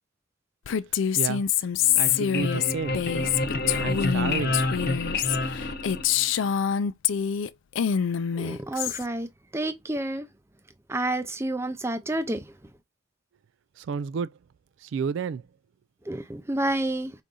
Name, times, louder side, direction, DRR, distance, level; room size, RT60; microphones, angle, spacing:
Female speech woman speaking, 0.7-7.5 7.8-9.0, left 9 dB, 75° left, 0.4 m, -26 dB
voice 1, 1.1-1.4 1.9-3.0 3.8-4.6 13.8-14.3 14.8-15.5, right 6 dB, 65° right, 0.3 m, -31 dB
sound 1, 1.8-6.5, left 2 dB, 55° left, 0.8 m, -29 dB
voice 2, 8.3-9.3 9.5-10.3 10.9-12.5 16.1-17.1, right 1 dB, 15° right, 0.5 m, -29 dB
4.8 x 2.7 x 3.8 m
head